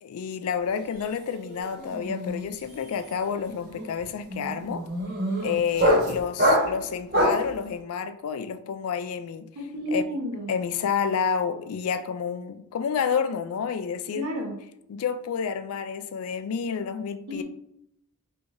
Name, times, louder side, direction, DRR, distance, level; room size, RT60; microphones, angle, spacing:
voice 1, 0.0-4.8 5.4-9.5 9.9-10.0 10.5-14.3 14.9-17.4, left 6 dB, 75° left, 0.3 m, -29 dB
sound 1, 0.7-1.0 1.3-7.5, equal, 40° right, 1.3 m, -26 dB
voice 2, 9.6-10.5 14.1-14.5 17.3-17.4, equal, 85° right, 0.9 m, -31 dB
3.5 x 3.2 x 2.6 m
head